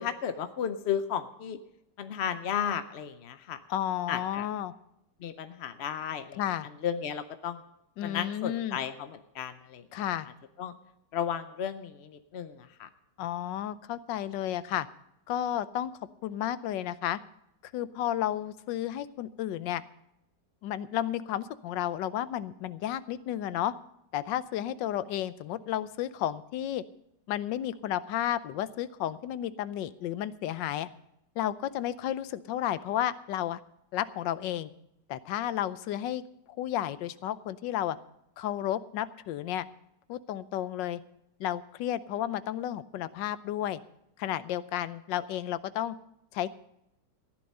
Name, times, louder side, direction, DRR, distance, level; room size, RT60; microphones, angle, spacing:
voice 1, 0.0-1.6 2.0-3.6 4.1-4.5 5.2-6.4 6.8-7.6 8.0-9.9 10.6-10.7 11.1-12.9, left 8 dB, 60° left, 11 dB, 0.6 m, -34 dB
voice 2, 3.7-4.7 6.4-6.7 8.0-8.8 9.9-10.3 13.2-14.9 15.3-15.9 16.2-17.2 17.7-19.8 20.6-23.7 24.1-26.8 27.3-30.9 31.4-33.6 33.9-34.7 35.1-36.2 36.6-38.0 38.4-39.7 40.1-41.0 41.4-43.8 44.2-46.0 46.3-46.5, left 12 dB, 90° left, 16 dB, 1.3 m, -32 dB
15.0 x 10.5 x 5.4 m, 0.81 s
omnidirectional pair, 1.9 m